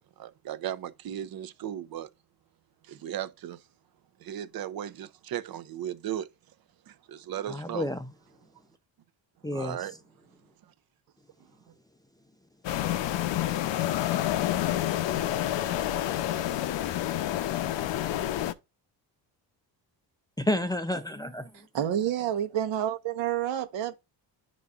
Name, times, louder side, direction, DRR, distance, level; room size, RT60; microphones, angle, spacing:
voice 1, 0.0-2.1 2.9-3.6 4.2-6.3 6.9-7.9 9.5-10.0, right 10 dB, 55° right, 0.7 m, -36 dB
voice 2, 7.5-8.1 9.4-9.8 20.4-21.5, left 1 dB, 10° left, 0.5 m, -30 dB
sound 1, 12.6-18.5, left 13 dB, 80° left, 0.7 m, -28 dB
voice 3, 21.5-23.9, right 10 dB, 85° right, 1.1 m, -29 dB
10.5 x 4.0 x 2.4 m
cardioid pair, 115°, 43 cm